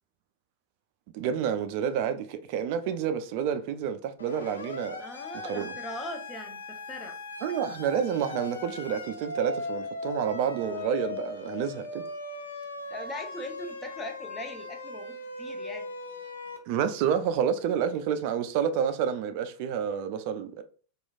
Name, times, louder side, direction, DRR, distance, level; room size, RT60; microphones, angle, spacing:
voice 1, 1.1-5.0 5.5-5.7 7.4-12.0 16.7-20.6, right 8 dB, 45° right, 0.3 m, -29 dB
Siren, 4.2-16.6, left 3 dB, 75° left, 0.4 m, -39 dB
voice 2, 5.0-7.2 12.9-15.9, left 1 dB, 20° left, 0.5 m, -40 dB
3.0 x 2.3 x 2.3 m
figure-of-eight pair, 90°, 0 cm